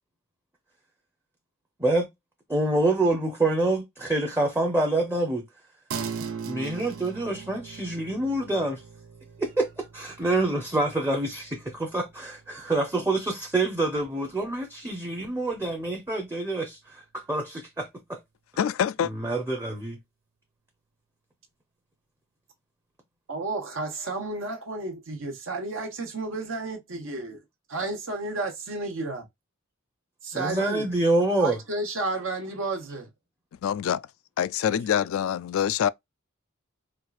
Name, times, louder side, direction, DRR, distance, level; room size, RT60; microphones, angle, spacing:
voice 1, 2.5-5.4 6.5-8.8 9.4-18.2 19.0-20.0 30.3-31.6, right 2 dB, 10° right, 0.7 m, -26 dB
sound 1, 5.9-15.6, right 6 dB, 80° right, 0.6 m, -41 dB
voice 2, 18.6-19.1 33.6-34.1 34.4-35.9, left 9 dB, 70° left, 0.3 m, -25 dB
voice 3, 23.3-27.4 27.7-29.3 30.2-30.9 31.4-33.1, right 3 dB, 65° right, 1.0 m, -32 dB
4.4 x 2.4 x 2.3 m
head